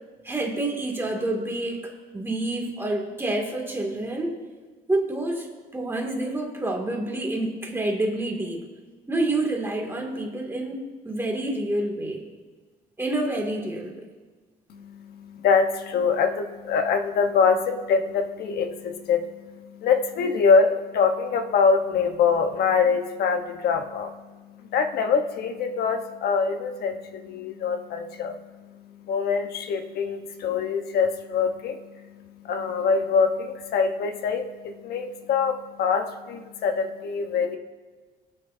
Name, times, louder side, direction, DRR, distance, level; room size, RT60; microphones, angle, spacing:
voice 1, 0.2-4.4 4.9-5.5 5.7-8.6 9.1-12.2 13.0-14.1, right 2 dB, 15° right, 0 dB, 2.4 m, -28 dB
voice 2, 14.7-37.6, left 5 dB, 70° left, 6 dB, 1.1 m, -24 dB
22.0 x 9.1 x 2.7 m, 1.4 s
cardioid pair, 105°, 17 cm